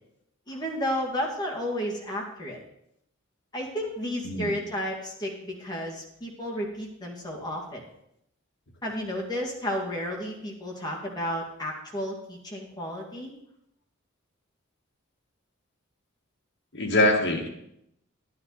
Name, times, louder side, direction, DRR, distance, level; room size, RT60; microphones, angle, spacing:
voice 1, 0.5-2.6 3.5-7.8 8.8-13.3, equal, 20° left, -2 dB, 2.1 m, -32 dB
voice 2, 16.7-17.5, left 1 dB, 60° left, 0 dB, 2.0 m, -23 dB
11.5 x 11.5 x 4.1 m, 0.77 s
head